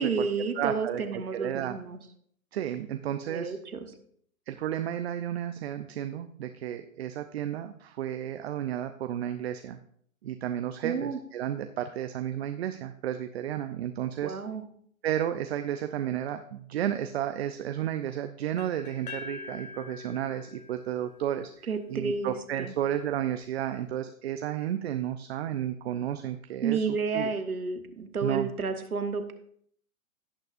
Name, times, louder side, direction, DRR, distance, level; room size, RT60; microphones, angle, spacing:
voice 1, 0.0-2.0 3.3-3.9 10.8-11.2 14.2-14.6 21.7-22.7 26.6-29.3, right 5 dB, 90° right, 8 dB, 1.3 m, -31 dB
voice 2, 0.6-1.8 2.5-3.5 4.5-9.8 10.2-14.3 15.0-21.5 21.9-26.9 27.1-27.3 28.2-28.5, right 10 dB, 50° right, 9 dB, 0.7 m, -32 dB
sound 1, 18.6-22.5, left 4 dB, 85° left, 1.0 m, -45 dB
17.0 x 6.5 x 2.6 m, 0.65 s
hypercardioid pair, 130°, 42 cm